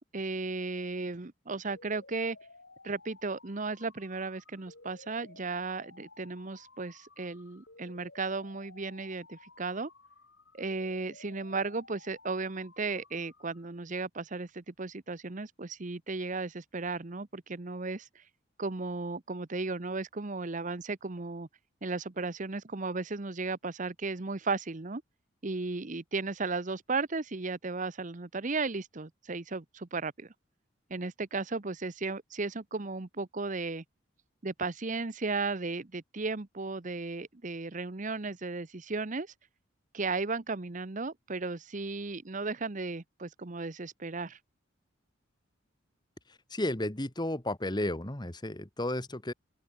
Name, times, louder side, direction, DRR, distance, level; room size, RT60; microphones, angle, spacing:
voice 1, 0.1-2.4 2.8-9.9 10.5-18.2 18.6-21.5 21.8-25.0 25.4-30.3 30.9-33.8 34.4-39.3 39.9-44.4, right 3 dB, 40° right, 0.9 m, -35 dB
sound 1, 1.7-13.7, left 3 dB, 65° left, 6.9 m, -56 dB
voice 2, 46.5-49.3, left 1 dB, 20° left, 1.6 m, -33 dB
open air
head